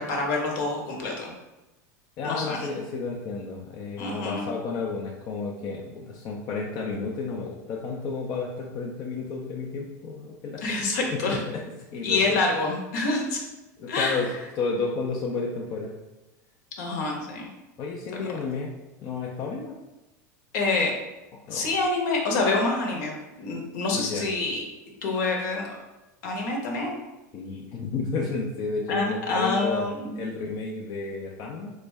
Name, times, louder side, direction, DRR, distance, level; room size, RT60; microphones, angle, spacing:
voice 1, 0.0-1.3 2.2-2.7 4.0-4.5 10.6-11.4 12.0-13.4 13.9-14.3 16.8-17.5 18.2-18.3 20.5-20.9 21.5-24.6 25.0-25.8 26.2-27.0 28.9-30.2, left 3 dB, 65° left, 0 dB, 1.0 m, -27 dB
voice 2, 2.2-10.9 11.1-11.6 11.9-12.4 13.8-14.3 14.6-15.9 17.8-18.7 19.0-19.8 21.4-21.7 23.9-24.2 27.3-29.9 30.1-31.7, left 4 dB, 45° left, -2 dB, 0.6 m, -32 dB
4.0 x 2.1 x 3.4 m, 1.0 s
hypercardioid pair, 105°, 10 cm